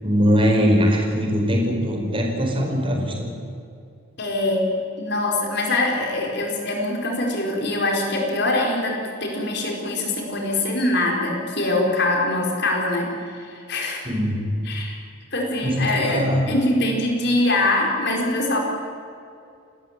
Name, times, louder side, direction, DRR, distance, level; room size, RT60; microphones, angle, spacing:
voice 1, 0.0-3.3 14.0-14.6 15.6-16.4, equal, 25° right, 1 dB, 4.9 m, -21 dB
voice 2, 4.2-4.7 5.0-14.0 14.6-15.0 15.3-18.6, left 2 dB, 60° left, 0 dB, 4.6 m, -23 dB
29.5 x 14.0 x 9.0 m, 2.4 s
head